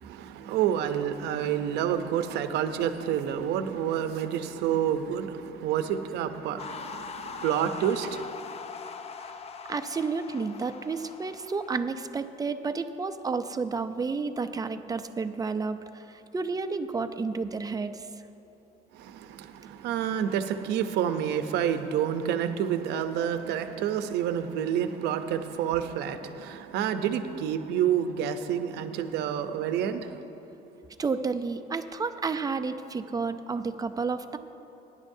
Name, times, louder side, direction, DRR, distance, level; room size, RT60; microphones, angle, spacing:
voice 1, 0.0-8.3 19.0-30.2, right 9 dB, 85° right, 9 dB, 0.7 m, -29 dB
sound 1, 6.6-11.8, left 5 dB, 35° left, 0.5 m, -41 dB
voice 2, 9.7-16.0 16.3-18.0 31.0-34.4, right 4 dB, 20° right, 9 dB, 0.5 m, -31 dB
20.0 x 10.5 x 2.7 m, 2.9 s
cardioid pair, 110°, 17 cm